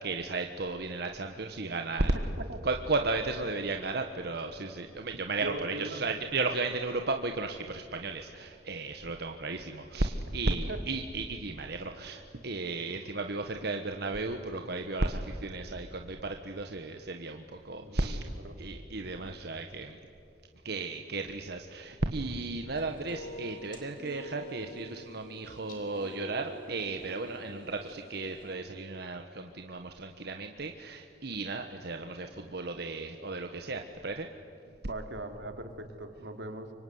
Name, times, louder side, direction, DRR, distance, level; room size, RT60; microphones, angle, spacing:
voice 1, 0.0-2.2 2.6-18.2 18.6-20.0 20.6-34.3, right 3 dB, 65° right, 5 dB, 1.3 m, -34 dB
voice 2, 5.4-6.0 10.5-10.8 17.8-18.6 34.9-36.7, right 1 dB, 90° right, 6 dB, 2.8 m, -40 dB
sound 1, 22.7-28.6, equal, 50° left, 4.1 m, -47 dB
26.0 x 24.0 x 9.5 m, 2.6 s
head